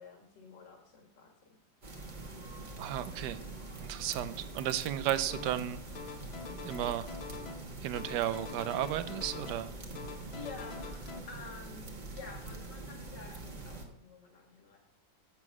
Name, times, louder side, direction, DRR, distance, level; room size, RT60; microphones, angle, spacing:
voice 1, 0.0-1.3 10.3-14.8, left 5 dB, 75° left, 2 dB, 2.5 m, -50 dB
sound 1, 1.8-13.9, right 2 dB, 30° right, 1.2 m, -44 dB
voice 2, 2.8-3.4 3.8-5.8 6.6-7.1 7.8-9.7, right 12 dB, 75° right, 13 dB, 1.2 m, -34 dB
sound 2, 5.3-5.7 5.9-7.7 7.9-9.7 10.0-11.2, left 5 dB, 55° left, 0.7 m, -45 dB
7.7 x 7.3 x 6.0 m, 0.75 s
omnidirectional pair, 1.9 m